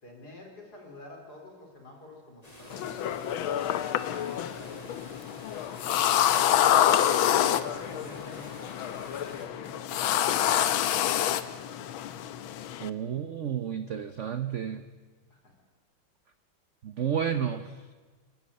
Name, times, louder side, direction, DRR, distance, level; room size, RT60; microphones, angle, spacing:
voice 1, 0.0-3.8 4.1-4.9 6.6-11.6 15.3-15.5, left 2 dB, 45° left, 1 dB, 4.7 m, -48 dB
sound 1, 2.4-9.5, left 1 dB, 15° left, 3.5 m, -49 dB
sound 2, 2.7-12.9, left 11 dB, 75° left, 1.6 m, -27 dB
voice 2, 12.8-14.8 16.8-17.7, right 8 dB, 65° right, 10 dB, 0.7 m, -31 dB
29.5 x 12.0 x 8.6 m, 1.4 s
omnidirectional pair, 2.3 m